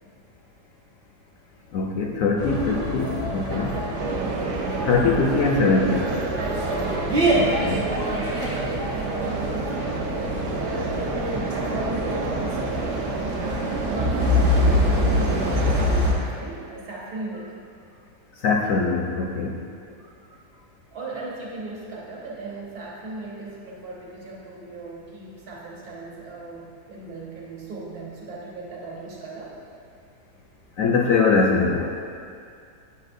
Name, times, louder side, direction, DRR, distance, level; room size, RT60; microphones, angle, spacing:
voice 1, 1.7-3.7 4.8-6.1 7.3-7.8 18.4-19.6 30.8-32.0, left 4 dB, 70° left, -2 dB, 0.8 m, -22 dB
sound 1, 2.4-16.1, left 1 dB, 40° right, 0.9 m, -26 dB
voice 2, 3.5-4.1 6.3-6.8 7.2-10.9 11.3-13.1 13.4-17.6 20.9-29.6, right 2 dB, 65° right, -4 dB, 1.5 m, -37 dB
sound 2, 4.0-15.9, right 3 dB, 85° right, 1.3 m, -29 dB
8.2 x 5.5 x 2.6 m, 2.3 s
omnidirectional pair, 1.8 m